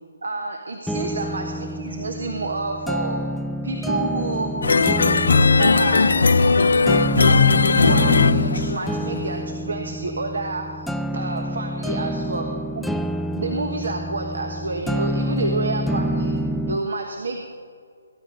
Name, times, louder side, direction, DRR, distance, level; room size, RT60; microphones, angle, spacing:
voice 1, 0.2-3.2 3.6-4.6 5.6-7.0 7.8-12.5 12.7-12.9 13.4-16.4 16.7-17.4, right 3 dB, 80° right, 3 dB, 1.3 m, -29 dB
sound 1, 0.9-16.9, right 1 dB, ahead, 0.4 m, -27 dB
sound 2, 4.6-9.2, left 4 dB, 75° left, 0.4 m, -17 dB
18.0 x 10.0 x 4.0 m, 2.1 s
hypercardioid pair, 145°, 0 cm